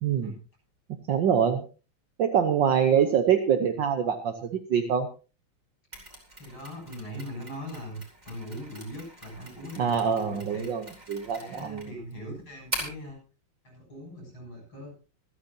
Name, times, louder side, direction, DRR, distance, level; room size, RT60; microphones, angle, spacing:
voice 1, 0.0-0.3 1.1-1.7 2.2-5.1 9.8-11.9, right 8 dB, 60° right, 6 dB, 1.7 m, -25 dB
Mechanisms, 5.9-13.1, right 1 dB, 20° right, 4.0 m, -42 dB
voice 2, 6.4-8.0 8.3-11.0 11.4-13.2 13.6-14.9, equal, 65° left, 0 dB, 8.1 m, -40 dB
26.0 x 9.5 x 2.8 m, 0.33 s
omnidirectional pair, 2.4 m